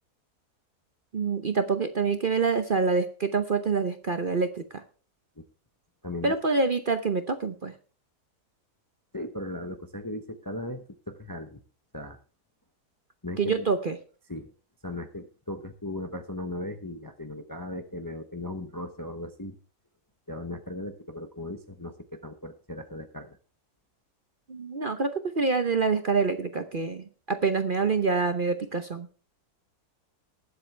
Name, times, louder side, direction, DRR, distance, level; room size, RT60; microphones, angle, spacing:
voice 1, 1.1-4.8 6.2-7.7 13.4-14.0 24.5-29.1, right 4 dB, 40° right, 9 dB, 0.8 m, -26 dB
voice 2, 6.0-6.3 9.1-11.6 11.9-12.2 13.2-13.7 14.3-14.5 14.8-19.6 20.3-23.4, left 1 dB, 15° left, 7 dB, 0.7 m, -37 dB
20.0 x 7.8 x 3.3 m, 0.38 s
omnidirectional pair, 1.6 m